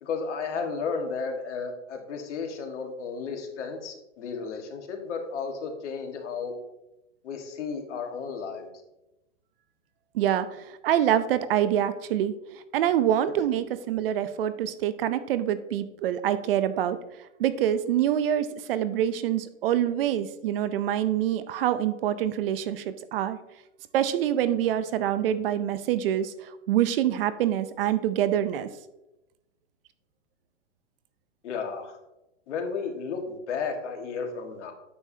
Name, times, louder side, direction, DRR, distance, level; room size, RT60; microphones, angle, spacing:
voice 1, 0.0-6.5 7.2-8.7 31.4-32.0 32.5-34.7, left 5 dB, 65° left, 4 dB, 1.6 m, -33 dB
voice 2, 10.1-10.5 10.8-12.3 12.7-17.0 17.4-23.4 23.9-26.3 26.7-28.7, right 11 dB, 50° right, 13 dB, 0.6 m, -25 dB
9.4 x 6.9 x 2.7 m, 0.93 s
hypercardioid pair, 130°, 38 cm